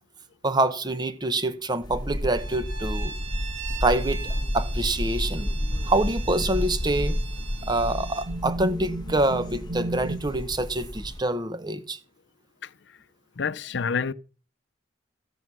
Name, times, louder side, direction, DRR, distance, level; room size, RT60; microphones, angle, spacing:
voice 1, 0.4-3.1 3.8-4.2 4.5-5.5 5.8-7.2 7.7-12.0, right 2 dB, 20° right, 1.0 m, -26 dB
sound 1, 1.8-11.2, equal, 25° left, 1.7 m, -31 dB
Bowed string instrument, 2.3-8.3, right 7 dB, 90° right, 3.1 m, -41 dB
sound 2, 5.6-5.9 6.7-6.8 7.6-10.2, right 2 dB, 55° right, 1.8 m, -34 dB
voice 2, 13.4-14.1, left 5 dB, 65° left, 0.6 m, -28 dB
16.0 x 7.4 x 6.2 m
head